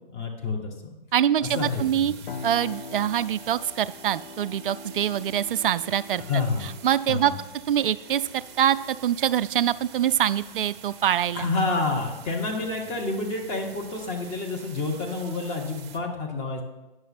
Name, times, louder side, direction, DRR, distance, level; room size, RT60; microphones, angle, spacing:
voice 1, 0.1-0.7 1.4-2.2 6.3-6.7 7.1-7.3 11.3-16.6, left 3 dB, 20° left, 1 dB, 1.1 m, -29 dB
voice 2, 1.1-2.1 2.4-6.2 6.8-7.3 7.7-11.5, right 10 dB, 65° right, 15 dB, 0.4 m, -24 dB
sound 1, 1.4-16.0, right 7 dB, 30° right, 0.7 m, -47 dB
sound 2, 2.3-12.0, left 3 dB, 70° left, 0.6 m, -44 dB
9.3 x 6.2 x 4.2 m, 1.1 s
hypercardioid pair, 130°, 29 cm